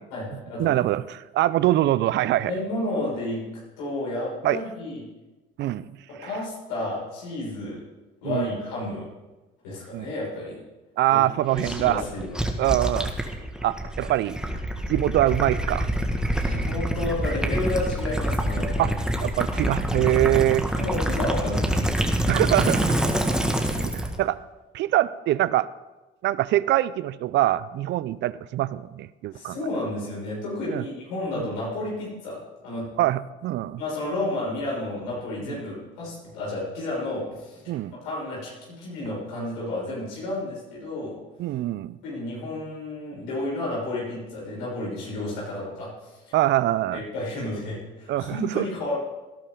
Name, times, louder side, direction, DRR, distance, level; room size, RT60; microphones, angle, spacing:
voice 1, 0.0-0.7 2.4-3.4 3.8-5.0 6.2-7.8 8.2-9.0 9.6-10.6 11.1-11.2 11.5-12.3 16.4-18.9 20.2-20.4 20.7-21.9 23.4-23.5 29.3-32.4 32.6-32.9 33.8-37.8 38.0-41.1 42.0-46.4 46.9-49.0, left 2 dB, 90° left, -5 dB, 6.0 m, -31 dB
voice 2, 0.6-2.5 4.4-4.6 5.6-5.9 6.2-6.3 8.2-8.5 9.9-10.1 11.0-12.0 12.6-13.1 13.6-14.4 14.9-15.9 18.8-18.9 19.2-20.7 22.3-23.0 23.8-24.4 24.7-25.7 26.2-29.6 30.7-30.8 31.4-31.5 33.0-33.8 35.5-35.6 37.7-37.9 41.4-42.0 46.3-47.0 48.1-48.7, right 14 dB, 65° right, 18 dB, 0.6 m, -24 dB
Gurgling / Liquid, 11.6-24.2, right 1 dB, 5° right, 1.9 m, -26 dB
18.5 x 11.0 x 3.9 m, 1.1 s
supercardioid pair, 70°, 20 cm